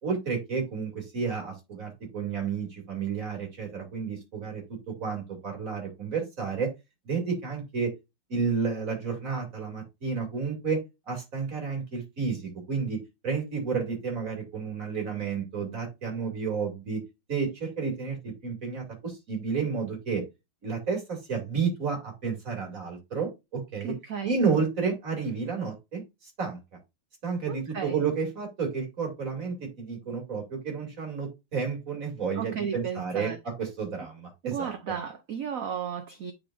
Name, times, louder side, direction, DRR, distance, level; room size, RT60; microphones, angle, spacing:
voice 1, 0.0-6.7 7.0-7.9 8.3-10.8 11.1-17.0 17.3-20.2 20.6-23.9 24.2-26.6 27.2-34.7, right 5 dB, 40° right, 2.8 m, -31 dB
voice 2, 23.8-24.4 27.5-28.0 32.4-33.4 34.4-36.3, right 7 dB, 65° right, 0.8 m, -34 dB
8.9 x 4.6 x 2.5 m
omnidirectional pair, 2.2 m